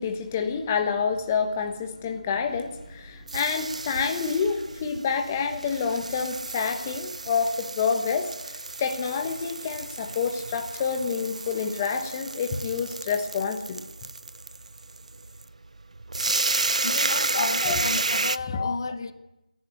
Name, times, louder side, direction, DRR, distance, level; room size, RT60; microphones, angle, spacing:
voice 1, 0.0-13.8 17.4-17.8 18.5-18.8, left 6 dB, 15° left, 1.2 m, -28 dB
sound 1, 2.5-18.4, right 3 dB, 60° right, 0.7 m, -32 dB
voice 2, 16.8-19.1, left 4 dB, 35° left, 1.1 m, -33 dB
29.0 x 11.5 x 9.6 m
figure-of-eight pair, 170°, 4 cm